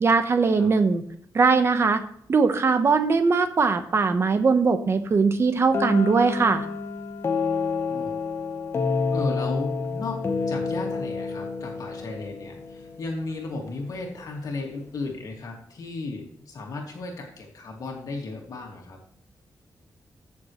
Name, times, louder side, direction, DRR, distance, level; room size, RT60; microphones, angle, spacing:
voice 1, 0.0-1.0 1.3-2.0 2.3-6.6, right 4 dB, 40° right, 8 dB, 1.0 m, -20 dB
sound 1, 5.7-13.5, left 4 dB, 40° left, 1.0 m, -29 dB
voice 2, 9.1-10.2 10.5-19.0, left 3 dB, 65° left, 0 dB, 2.3 m, -35 dB
15.0 x 6.8 x 3.2 m, 0.64 s
wide cardioid pair, 160°, 7 cm